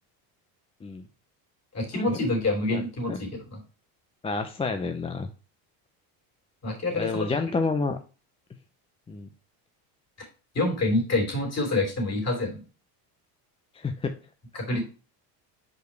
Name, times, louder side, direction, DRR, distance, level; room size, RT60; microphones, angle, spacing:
voice 1, 1.7-3.6 6.6-7.5 10.5-12.6 14.5-14.8, left 2 dB, 35° left, 2 dB, 3.3 m, -27 dB
voice 2, 2.7-3.2 4.2-5.3 6.9-8.0 9.1-9.3 13.7-14.2 14.7-14.8, left 4 dB, 15° left, 6 dB, 0.4 m, -29 dB
5.2 x 4.7 x 4.6 m, 0.34 s
supercardioid pair, 110°, 45 cm